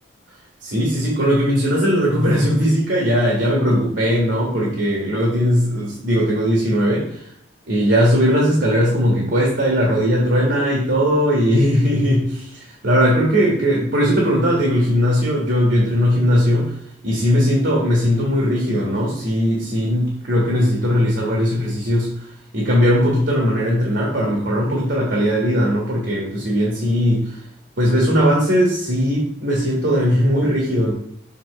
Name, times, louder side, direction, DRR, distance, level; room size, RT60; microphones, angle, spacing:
voice 1, 0.6-7.2 7.7-16.8 17.0-22.1 22.5-27.4 27.8-30.9, equal, 65° right, -3 dB, 1.7 m, -18 dB
6.0 x 5.9 x 3.2 m, 0.72 s
head